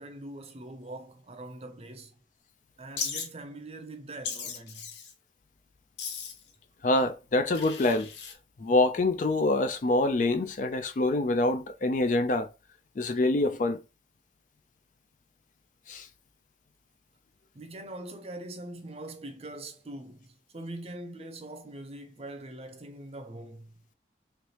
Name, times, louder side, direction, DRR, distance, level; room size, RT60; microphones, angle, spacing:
voice 1, 0.0-2.2 2.8-4.9 17.5-23.7, right 1 dB, 35° right, 0.6 m, -43 dB
Wild animals, 3.0-3.3 4.2-5.1 6.0-6.5 7.5-8.3, left 6 dB, 85° left, 0.8 m, -36 dB
voice 2, 6.8-8.1 8.6-12.5 13.0-13.8 15.9-16.1, left 2 dB, 45° left, 0.4 m, -25 dB
3.2 x 3.0 x 2.9 m
head